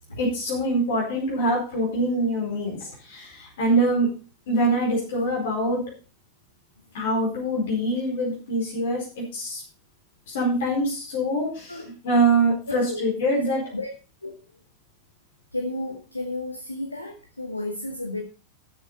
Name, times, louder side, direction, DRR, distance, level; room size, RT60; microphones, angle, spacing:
voice 1, 0.2-4.1 4.5-5.8 6.9-9.6 10.3-13.6, right 1 dB, 55° left, -2 dB, 4.5 m, -24 dB
voice 2, 12.7-13.0 13.3-13.9 14.2-14.3 15.5-18.2, left 2 dB, 85° left, 5 dB, 1.5 m, -33 dB
13.0 x 7.1 x 5.5 m, 0.35 s
figure-of-eight pair, 90°, 0 cm